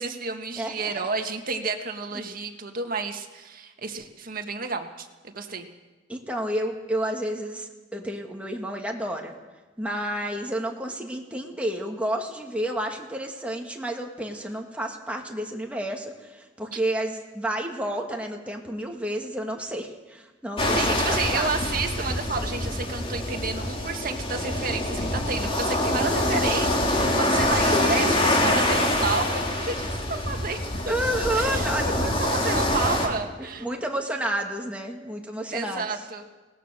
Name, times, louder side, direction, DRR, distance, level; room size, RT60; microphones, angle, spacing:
voice 1, 0.0-5.7 16.7-16.8 20.7-30.6 30.8-30.9 31.3-31.7 32.2-33.7 35.5-36.2, right 4 dB, 50° right, 4 dB, 1.8 m, -31 dB
voice 2, 0.6-1.1 2.1-2.2 6.1-9.3 9.8-21.5 26.9-27.2 27.7-28.3 30.9-32.1 32.4-32.5 33.4-35.9, right 1 dB, 5° right, 1 dB, 2.3 m, -30 dB
sound 1, 20.6-33.1, left 1 dB, 30° left, 2.9 m, -25 dB
22.5 x 18.5 x 6.7 m, 1.2 s
head